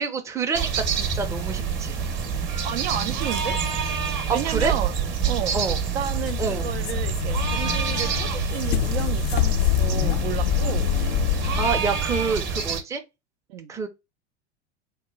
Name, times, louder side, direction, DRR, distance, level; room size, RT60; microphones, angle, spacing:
voice 1, 0.0-2.0 4.3-4.7 5.5-5.8 6.4-6.7 11.3-13.0 13.7-13.9, right 5 dB, 10° right, 0.5 m, -27 dB
sound 1, 0.5-12.8, right 6 dB, 35° right, 0.9 m, -27 dB
voice 2, 2.6-3.6 4.3-5.0 5.3-5.6 5.9-10.9 13.5-13.7, right 10 dB, 70° right, 0.5 m, -32 dB
sound 2, 6.0-11.9, left 13 dB, 65° left, 0.5 m, -26 dB
2.9 x 2.1 x 3.7 m
figure-of-eight pair, 85°, 33 cm